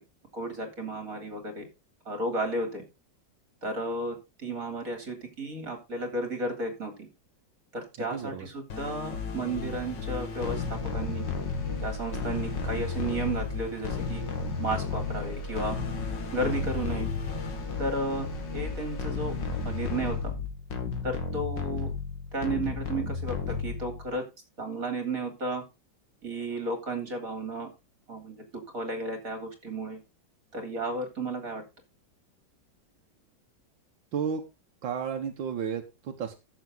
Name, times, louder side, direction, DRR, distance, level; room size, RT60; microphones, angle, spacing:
voice 1, 0.3-1.7 2.1-2.8 3.6-7.1 7.7-11.3 11.8-14.2 14.6-15.8 16.3-17.1 17.8-18.3 18.5-19.3 19.7-20.4 21.0-21.9 22.3-24.2 24.6-25.6 26.2-27.7 28.1-28.4 28.7-30.0 30.5-31.6, right 2 dB, 45° right, 5 dB, 3.9 m, -33 dB
voice 2, 8.0-8.5 34.1-34.4 34.8-36.3, right 7 dB, 85° right, 4 dB, 1.9 m, -32 dB
sound 1, 8.7-24.1, left 4 dB, 75° left, 2.5 m, -33 dB
14.0 x 7.2 x 3.9 m, 0.26 s
omnidirectional pair, 2.0 m